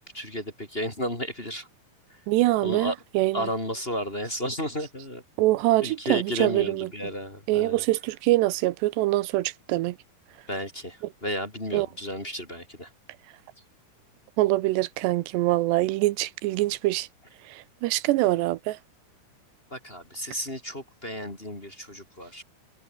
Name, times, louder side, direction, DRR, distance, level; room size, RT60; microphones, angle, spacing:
voice 1, 0.0-1.7 2.1-2.2 2.6-2.9 3.3-5.2 5.8-7.8 10.5-12.9 19.7-22.4, equal, 15° left, 3.2 m, -33 dB
voice 2, 2.3-3.4 5.4-6.9 7.5-10.0 11.7-11.9 14.4-17.1 17.5-18.8, right 18 dB, 85° right, 3.0 m, -24 dB
omnidirectional pair, 4.9 m